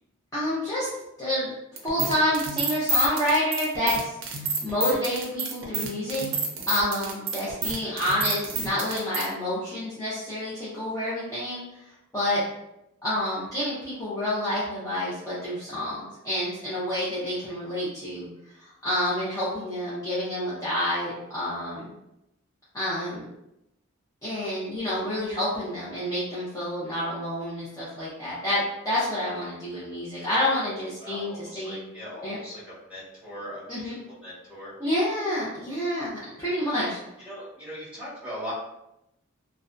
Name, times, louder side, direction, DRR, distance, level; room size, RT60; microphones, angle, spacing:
voice 1, 0.3-0.9 1.2-1.5 1.8-4.1 4.6-6.3 6.7-11.9 12.1-12.4 13.0-18.3 18.6-21.9 22.7-23.3 24.2-31.8 32.2-32.4 33.7-34.0 34.8-36.1 36.4-37.0, left 1 dB, 15° left, -11 dB, 0.6 m, -28 dB
sound 1, 1.8-9.3, right 3 dB, 65° right, 0.5 m, -28 dB
voice 2, 31.0-33.9 34.2-34.7 37.2-38.5, equal, 5° right, -9 dB, 1.2 m, -39 dB
2.6 x 2.2 x 2.4 m, 0.85 s
head